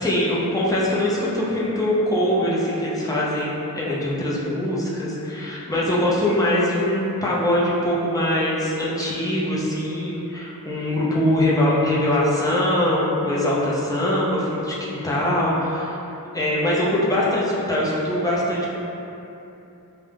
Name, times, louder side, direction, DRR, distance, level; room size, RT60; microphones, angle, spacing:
voice 1, 0.0-16.0 16.3-18.7, left 1 dB, 10° left, -7 dB, 0.5 m, -22 dB
2.3 x 2.0 x 3.3 m, 2.9 s
wide cardioid pair, 45°, 36 cm